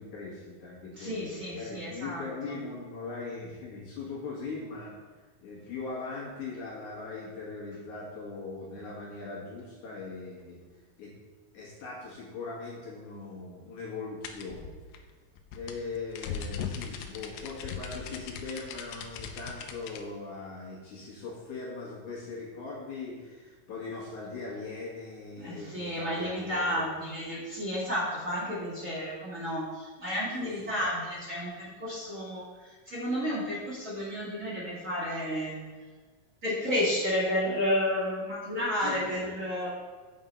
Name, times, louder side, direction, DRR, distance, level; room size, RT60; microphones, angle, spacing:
voice 1, 0.0-4.9 5.4-10.6 11.0-11.1 11.5-14.8 15.5-26.9 30.4-30.7 38.8-39.2, left 3 dB, 60° left, -5 dB, 2.7 m, -40 dB
voice 2, 0.9-2.6 25.4-35.6 36.4-39.7, equal, 35° right, -8 dB, 1.4 m, -32 dB
sound 1, 14.2-20.0, left 7 dB, 80° left, 2.2 m, -39 dB
7.1 x 5.5 x 5.3 m, 1.4 s
omnidirectional pair, 4.2 m